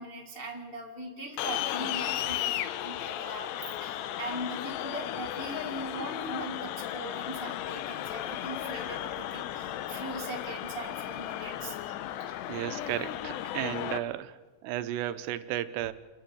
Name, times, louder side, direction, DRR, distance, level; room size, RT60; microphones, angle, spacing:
voice 1, 0.0-11.7 12.2-12.3 13.4-13.5, right 1 dB, 20° left, 0 dB, 1.4 m, -40 dB
sound 1, 1.4-14.0, left 12 dB, 85° left, 3.0 m, -35 dB
voice 2, 12.5-14.4 14.6-15.9, right 13 dB, 85° right, 12 dB, 2.9 m, -33 dB
28.5 x 10.5 x 9.3 m, 1.3 s
omnidirectional pair, 4.8 m